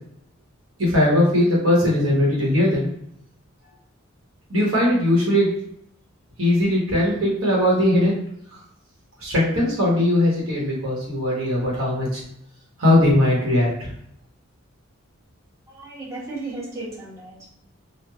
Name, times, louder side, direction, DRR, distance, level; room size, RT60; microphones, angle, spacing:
voice 1, 0.8-2.9 4.5-5.5 6.4-8.2 8.5-8.6 9.2-12.2 12.8-13.9, left 1 dB, 90° right, -5 dB, 1.2 m, -19 dB
voice 2, 15.7-17.5, right 2 dB, 15° right, -7 dB, 0.9 m, -35 dB
3.0 x 2.3 x 2.3 m, 0.72 s
head